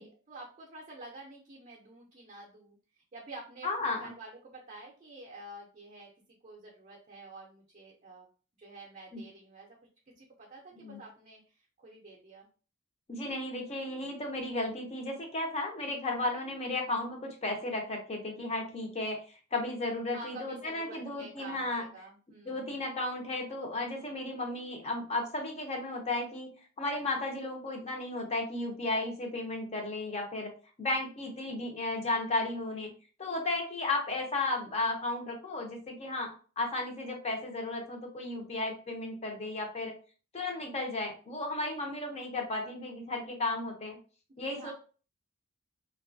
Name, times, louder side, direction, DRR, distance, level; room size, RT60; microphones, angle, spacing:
voice 1, 0.0-6.1 6.4-8.3 8.6-9.8 10.1-12.5 20.1-22.7 44.4-44.7, right 2 dB, 35° right, -2 dB, 0.5 m, -49 dB
voice 2, 3.6-4.1 9.1-9.2 10.7-11.0 13.1-21.8 22.4-26.5 26.8-30.5 30.8-32.9 33.2-39.9 40.3-44.0 44.4-44.7, left 2 dB, 30° left, 2 dB, 0.6 m, -34 dB
2.6 x 2.3 x 2.5 m, 0.38 s
head